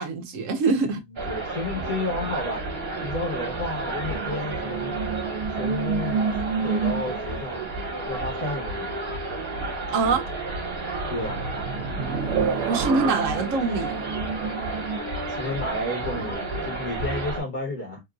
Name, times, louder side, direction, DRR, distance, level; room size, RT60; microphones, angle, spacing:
voice 1, 0.0-1.0 9.9-10.3 12.7-14.0, right 4 dB, 60° right, 0.9 m, -24 dB
voice 2, 1.1-2.6 3.0-5.0 5.6-6.3 6.6-7.6 8.1-8.9 11.1-11.5 15.3-18.0, left 2 dB, 50° left, 1.5 m, -32 dB
sound 1, 1.2-17.4, right 2 dB, 35° right, 1.4 m, -31 dB
sound 2, 4.0-7.5 11.0-15.0, right 5 dB, 80° right, 1.2 m, -29 dB
3.7 x 2.6 x 2.3 m
omnidirectional pair, 1.8 m